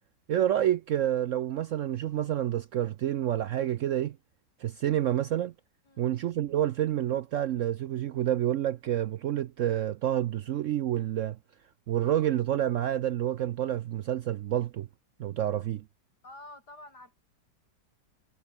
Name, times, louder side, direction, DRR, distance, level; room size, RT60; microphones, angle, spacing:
voice 1, 0.3-4.2 4.6-5.5 6.0-11.4 11.9-14.9 15.2-15.8, right 11 dB, 80° right, 0.7 m, -28 dB
voice 2, 16.2-17.2, left 2 dB, 60° left, 7.4 m, -48 dB
omnidirectional pair, 1.9 m